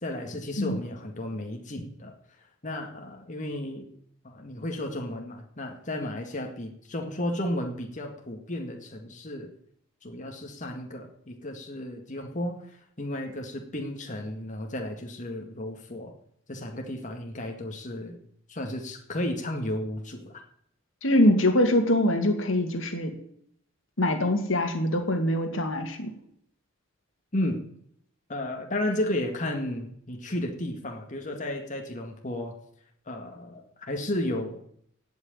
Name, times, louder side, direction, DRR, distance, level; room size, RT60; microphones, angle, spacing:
voice 1, 0.0-2.1 2.6-3.9 4.2-9.5 10.0-16.1 16.5-18.2 18.5-20.4 27.3-27.6 28.3-32.5 33.1-34.6, left 1 dB, 40° left, 2 dB, 2.0 m, -33 dB
voice 2, 21.0-23.1 24.0-26.1, left 1 dB, 80° left, 5 dB, 2.3 m, -23 dB
17.0 x 6.4 x 9.1 m, 0.68 s
head